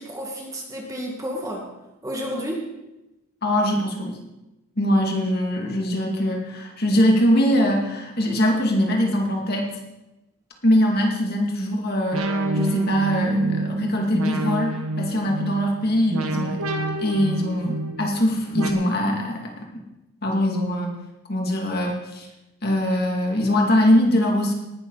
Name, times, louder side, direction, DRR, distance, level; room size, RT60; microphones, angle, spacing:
voice 1, 0.0-1.6 2.0-2.7, equal, 15° right, 0 dB, 1.9 m, -31 dB
voice 2, 3.4-4.2 4.8-9.7 10.6-12.2 12.5-16.7 17.0-19.6 20.2-20.9 21.3-22.3 22.6-24.5, left 1 dB, 45° left, 0 dB, 2.5 m, -22 dB
sound 1, 12.1-18.7, right 2 dB, 80° right, 1.6 m, -27 dB
18.5 x 12.0 x 4.1 m, 0.98 s
head